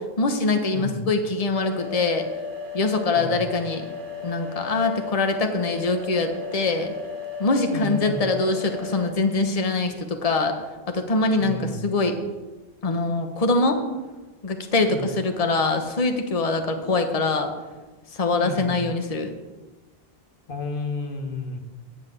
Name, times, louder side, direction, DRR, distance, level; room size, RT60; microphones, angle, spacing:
voice 1, 0.0-2.3 2.7-3.8 4.2-6.9 7.4-10.6 10.9-12.2 12.8-13.8 14.4-17.5 18.1-19.3, left 3 dB, 40° left, 6 dB, 1.0 m, -23 dB
voice 2, 0.7-1.0 3.1-3.4 7.7-8.2 11.4-11.9 14.9-15.0 18.4-18.8 20.5-21.6, left 3 dB, 60° left, 4 dB, 1.4 m, -32 dB
sound 1, 1.5-9.1, left 6 dB, 55° right, 1.3 m, -35 dB
9.9 x 5.6 x 7.9 m, 1.2 s
omnidirectional pair, 1.0 m